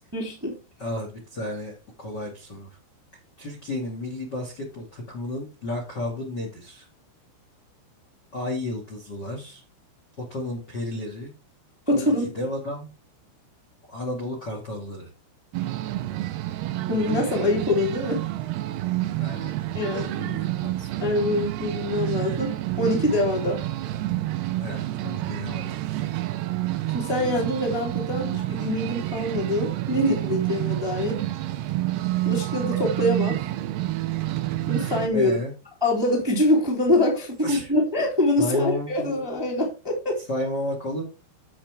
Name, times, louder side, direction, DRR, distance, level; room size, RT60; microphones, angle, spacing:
voice 1, 0.1-0.5 11.9-12.3 16.9-18.2 19.7-20.1 21.0-23.6 26.9-31.2 32.2-33.4 34.7-35.4 35.8-40.2, left 1 dB, 5° right, 1.9 m, -24 dB
voice 2, 0.8-2.8 3.4-6.9 8.3-9.6 10.2-11.3 11.9-12.9 13.9-15.1 19.1-19.5 20.0-20.9 24.6-25.6 35.1-35.5 37.4-37.7 38.4-39.2 40.3-41.0, left 1 dB, 35° left, 1.8 m, -32 dB
sound 1, 15.5-35.1, right 15 dB, 90° right, 2.3 m, -29 dB
10.5 x 7.9 x 3.5 m
omnidirectional pair, 5.9 m